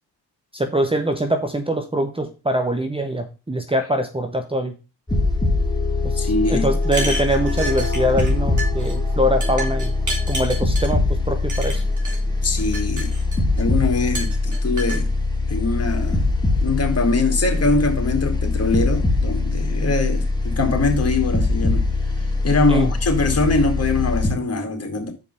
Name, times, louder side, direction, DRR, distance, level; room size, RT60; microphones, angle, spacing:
voice 1, 0.5-4.7 6.0-9.9 10.3-11.8 22.7-22.9, right 1 dB, 10° right, 1.1 m, -23 dB
sound 1, 5.1-24.3, left 3 dB, 10° left, 2.2 m, -22 dB
voice 2, 6.2-6.7 12.4-13.1 13.6-15.1 15.5-16.2 16.6-21.8 22.2-25.1, left 3 dB, 30° left, 2.6 m, -22 dB
sound 2, 6.8-8.3 8.6-8.9 9.4-10.9 11.5-12.2 12.6-13.6 14.1-15.0, right 1 dB, 40° right, 3.6 m, -30 dB
6.7 x 5.2 x 5.5 m
hypercardioid pair, 55°, 47 cm